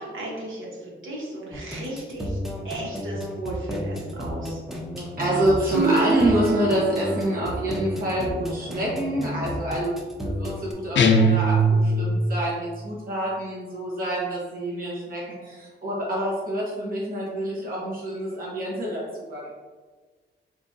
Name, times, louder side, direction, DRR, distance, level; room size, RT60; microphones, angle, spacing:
voice 1, 0.0-2.4 2.6-4.6, right 1 dB, 85° right, -4 dB, 1.1 m, -35 dB
sound 1, 1.5-10.7, left 1 dB, ahead, 0.5 m, -32 dB
voice 2, 5.0-9.9 10.2-19.5, right 1 dB, 45° right, -6 dB, 1.0 m, -27 dB
sound 2, 5.7-9.4 11.9-12.4, right 4 dB, 65° right, 0.4 m, -29 dB
sound 3, 11.0-12.3, equal, 65° left, 0.4 m, -19 dB
4.6 x 2.4 x 2.6 m, 1.4 s
wide cardioid pair, 120°, 20 cm